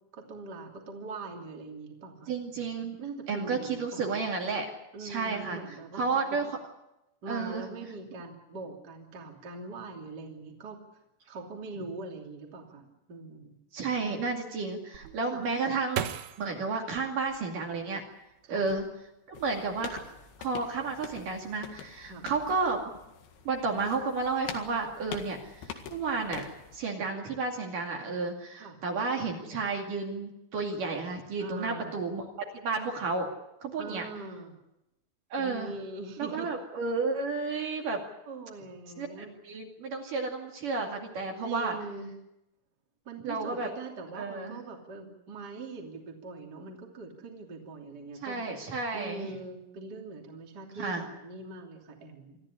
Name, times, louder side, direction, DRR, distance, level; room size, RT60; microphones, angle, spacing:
voice 1, 0.1-2.3 3.0-4.2 4.9-6.2 7.2-10.8 11.3-13.6 15.2-15.4 18.4-18.6 22.0-22.2 28.6-28.8 31.4-32.0 33.8-34.5 35.4-36.5 38.3-39.3 41.4-42.1 43.0-48.4 48.9-52.4, right 3 dB, 25° right, 1 dB, 2.9 m, -42 dB
voice 2, 2.3-3.0 3.3-4.7 5.0-6.6 7.3-7.6 13.7-16.0 16.4-18.0 18.5-18.8 19.3-20.0 20.4-22.8 23.5-26.5 26.7-32.2 32.6-33.3 33.6-34.1 35.3-35.7 36.2-38.0 39.0-41.8 43.2-43.7 44.1-44.6 48.2-49.3 50.8-51.1, right 4 dB, 55° right, 1 dB, 3.7 m, -32 dB
sound 1, 14.9-18.0 18.6-19.3 19.6-20.1, right 10 dB, 70° right, 2.7 m, -38 dB
sound 2, 19.3-26.8, left 7 dB, 70° left, 3.7 m, -45 dB
25.0 x 14.0 x 9.9 m, 0.90 s
omnidirectional pair, 5.0 m